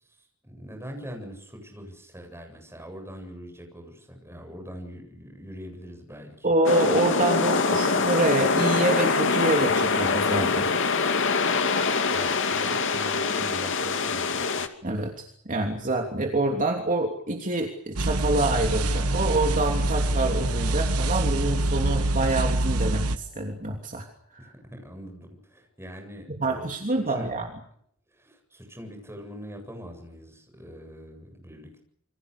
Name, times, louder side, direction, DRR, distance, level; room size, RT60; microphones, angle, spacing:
voice 1, 0.1-6.5 12.1-14.7 24.4-26.7 27.1-27.3 28.1-31.8, equal, 10° right, 4 dB, 8.0 m, -42 dB
voice 2, 6.4-10.7 14.8-24.5 26.4-27.5, right 2 dB, 35° right, 2 dB, 3.1 m, -26 dB
sound 1, 6.6-14.7, left 4 dB, 60° left, 2.6 m, -24 dB
sound 2, 18.0-23.2, right 2 dB, 80° right, 1.3 m, -25 dB
sound 3, 18.2-24.1, left 3 dB, 40° left, 7.2 m, -45 dB
28.0 x 25.0 x 6.8 m, 0.68 s
head